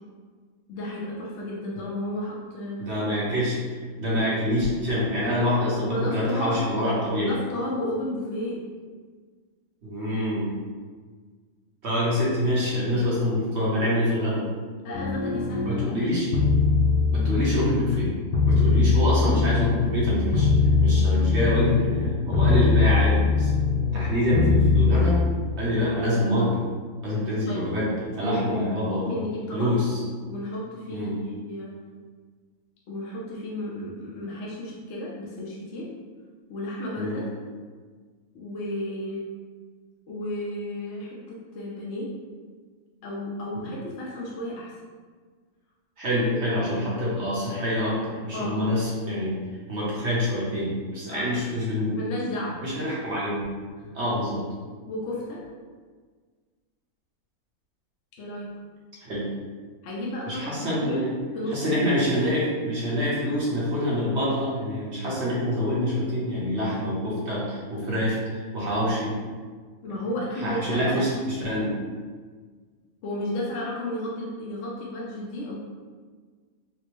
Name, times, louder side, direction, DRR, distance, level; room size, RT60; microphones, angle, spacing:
voice 1, 0.7-2.8 5.9-6.6 7.2-8.6 14.8-16.0 27.5-27.6 28.2-29.7 30.3-31.7 32.9-35.9 36.5-37.2 38.3-39.2 40.1-42.1 43.0-44.7 46.0-46.4 48.3-48.6 51.1-51.2 52.0-52.6 54.8-55.4 58.2-58.5 59.8-61.0 61.3-61.9 69.8-71.0 73.0-75.6, left 1 dB, 60° left, -4 dB, 0.8 m, -33 dB
voice 2, 2.8-7.3 9.8-10.6 11.8-14.4 15.7-16.3 17.1-18.1 18.4-20.5 20.8-23.5 23.9-25.2 25.5-26.6 27.0-29.1 29.5-30.0 30.9-31.2 36.9-37.2 43.5-43.7 46.0-49.4 49.7-52.0 52.6-53.4 53.9-54.4 59.0-59.3 60.3-61.1 61.5-69.1 70.4-71.7, equal, 50° right, -7 dB, 1.0 m, -26 dB
sound 1, 14.9-15.8 16.3-18.1 18.3-22.1 22.3-24.1 24.3-25.3, left 4 dB, 85° left, 1.2 m, -21 dB
4.2 x 2.1 x 3.0 m, 1.5 s
omnidirectional pair, 1.6 m